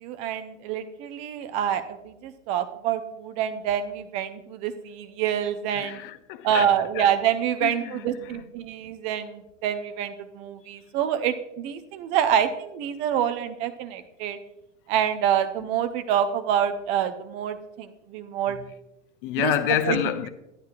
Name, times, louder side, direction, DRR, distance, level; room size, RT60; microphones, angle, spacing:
voice 1, 0.0-6.0 6.4-14.4 14.9-18.6 19.4-19.5 19.9-20.0, right 9 dB, 20° right, 0.3 m, -27 dB
voice 2, 5.7-7.1 7.6-8.4 18.5-18.6 19.2-20.3, left 11 dB, 45° left, 0.6 m, -28 dB
11.5 x 9.2 x 2.5 m
figure-of-eight pair, 95°, 38 cm